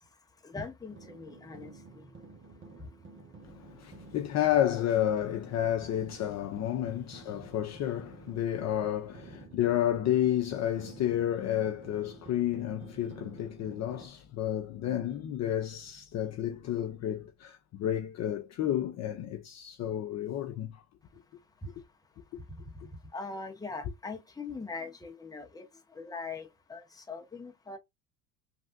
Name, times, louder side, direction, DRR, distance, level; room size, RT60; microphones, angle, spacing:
voice 1, 0.4-1.7 23.1-25.6 26.0-27.8, left 4 dB, 10° left, 0.8 m, -41 dB
sound 1, 0.9-14.1, right 4 dB, 25° right, 1.0 m, -51 dB
voice 2, 3.4-20.8, left 11 dB, 35° left, 0.5 m, -31 dB
3.3 x 2.5 x 2.5 m
hypercardioid pair, 85°, 47 cm